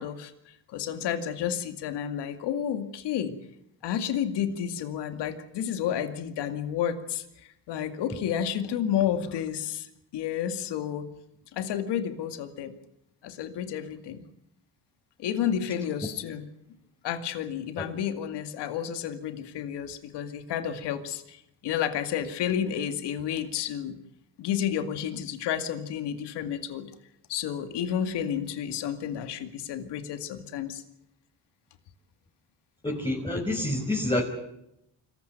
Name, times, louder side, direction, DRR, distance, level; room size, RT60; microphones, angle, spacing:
voice 1, 0.0-3.3 3.8-9.9 10.1-11.1 11.5-12.7 13.2-14.2 15.2-16.5 17.0-24.0 24.4-26.9 27.3-30.8, left 9 dB, 85° left, 9 dB, 2.3 m, -31 dB
voice 2, 32.8-34.2, left 1 dB, 10° left, -2 dB, 5.8 m, -27 dB
25.5 x 15.5 x 9.2 m, 0.79 s
cardioid pair, 80°, 40 cm